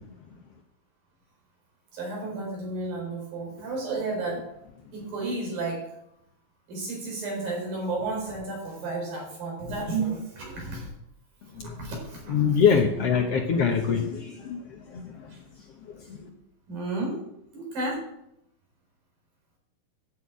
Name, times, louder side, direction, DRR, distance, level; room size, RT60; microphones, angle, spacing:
voice 1, 1.9-4.5 4.9-6.0 6.7-10.9 11.5-12.7 15.3-15.4 16.7-17.2 17.5-18.0, right 3 dB, 85° right, -1 dB, 6.2 m, -32 dB
voice 2, 12.3-14.6 14.9-15.0 16.2-16.3, left 6 dB, 60° left, 2 dB, 1.7 m, -23 dB
11.0 x 6.5 x 8.5 m, 0.78 s
omnidirectional pair, 4.0 m